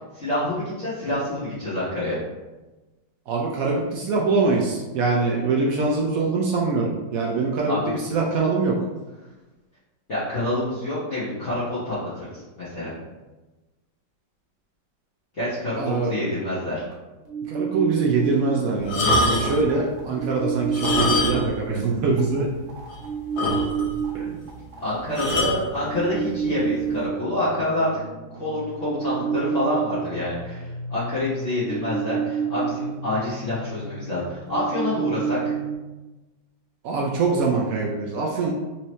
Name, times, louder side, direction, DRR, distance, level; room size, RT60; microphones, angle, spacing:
voice 1, 0.1-2.2 7.7-7.9 10.1-12.9 15.3-16.8 24.8-27.9 28.4-35.5, left 1 dB, 45° left, -12 dB, 1.2 m, -27 dB
voice 2, 3.3-8.8 15.8-16.1 17.5-22.5 24.1-24.4 36.8-38.5, right 4 dB, 75° right, -1 dB, 0.8 m, -23 dB
sound 1, 16.9-17.0 17.2-18.6 19.7-21.4 22.2-22.4 22.7-35.7, right 7 dB, 50° right, 1.0 m, -30 dB
sound 2, 18.8-19.7 20.6-21.6 21.9-22.0 22.5-22.6 22.9-23.0 23.4-24.0 25.2-25.6 26.5-26.7, left 2 dB, 90° left, 1.6 m, -23 dB
4.4 x 2.8 x 3.0 m, 1.1 s
omnidirectional pair, 2.0 m